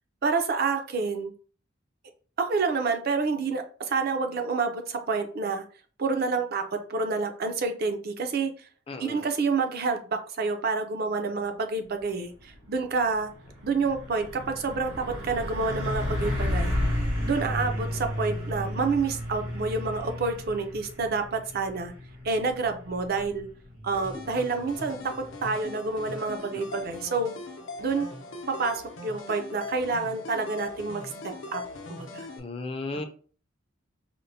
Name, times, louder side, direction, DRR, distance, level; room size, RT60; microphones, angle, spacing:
voice 1, 0.2-1.3 2.4-5.6 6.0-8.7 9.0-13.3 13.6-16.8 17.2-21.9 22.2-23.5 23.8-25.0 25.4-27.3 27.8-28.1 28.6-31.6 31.9-32.3 32.9-33.1, right 4 dB, 50° right, 6 dB, 0.5 m, -28 dB
voice 2, 8.9-9.2 26.7-26.8 32.4-33.1, left 3 dB, 30° left, 5 dB, 0.4 m, -35 dB
Truck, 12.4-12.6 13.0-25.6, left 1 dB, 75° right, 1.4 m, -33 dB
sound 1, 23.9-32.4, left 2 dB, 80° left, 0.7 m, -40 dB
4.3 x 2.1 x 2.7 m, 0.42 s
head